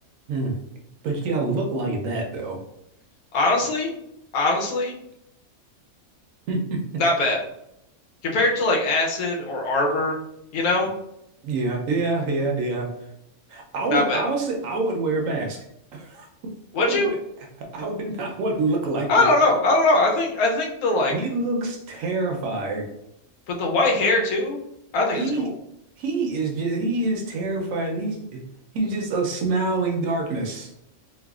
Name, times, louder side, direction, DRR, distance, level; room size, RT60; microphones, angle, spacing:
voice 1, 1.0-2.6 6.5-6.8 11.4-12.9 13.5-15.6 15.9-16.3 16.8-17.1 17.7-19.3 21.1-22.9 25.1-25.5 26.0-28.4 28.7-30.7, right 3 dB, 70° right, 1 dB, 0.9 m, -26 dB
voice 2, 3.3-3.9 4.3-5.0 7.0-7.4 8.2-10.2 10.5-10.9 13.9-14.2 16.7-17.1 19.1-21.1 23.5-24.6 24.9-25.5, left 2 dB, 80° left, 0 dB, 1.1 m, -21 dB
3.3 x 2.1 x 2.3 m, 0.81 s
omnidirectional pair, 1.5 m